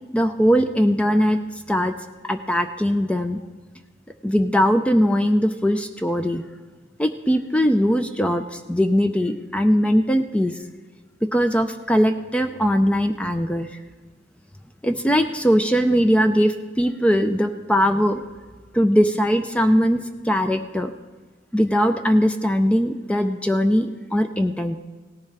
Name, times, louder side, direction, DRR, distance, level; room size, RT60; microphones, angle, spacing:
voice 1, 0.1-1.4 1.7-1.9 2.2-3.4 4.2-6.4 7.0-10.6 11.2-13.7 14.8-18.2 18.7-20.9 21.5-24.8, equal, 5° left, 7 dB, 0.4 m, -20 dB
17.5 x 11.0 x 3.3 m, 1.4 s
head